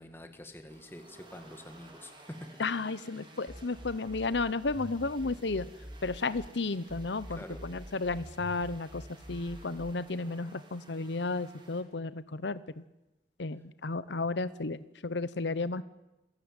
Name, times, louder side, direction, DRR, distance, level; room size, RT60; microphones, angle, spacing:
voice 1, 0.0-2.6 5.2-5.3 7.4-7.6, left 1 dB, 15° left, 7 dB, 1.9 m, -46 dB
sound 1, 0.7-11.8, right 2 dB, 25° right, 4.3 m, -55 dB
voice 2, 2.6-5.7 6.0-12.8 13.4-15.8, left 3 dB, 75° left, 15 dB, 0.9 m, -33 dB
sound 2, 3.5-6.5 6.9-9.9, equal, 5° right, 1.0 m, -46 dB
27.5 x 16.5 x 9.0 m, 0.94 s
head